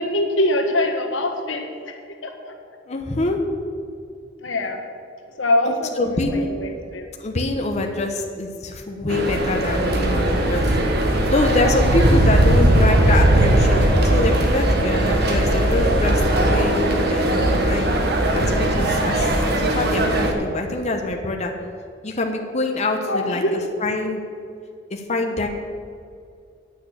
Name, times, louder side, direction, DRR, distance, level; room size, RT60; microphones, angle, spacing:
voice 1, 0.0-2.5 4.4-4.8 5.4-7.0 11.5-11.7 23.0-23.7, left 1 dB, 90° left, 3 dB, 1.4 m, -24 dB
voice 2, 2.9-3.4 5.6-6.5 7.2-10.7 11.3-17.9 18.3-21.5 22.0-23.4 23.8-24.2 24.9-25.5, left 2 dB, 40° left, 3 dB, 0.9 m, -25 dB
sound 1, 9.1-20.3, right 1 dB, 60° right, 1.4 m, -18 dB
9.1 x 6.5 x 8.7 m, 2.3 s
head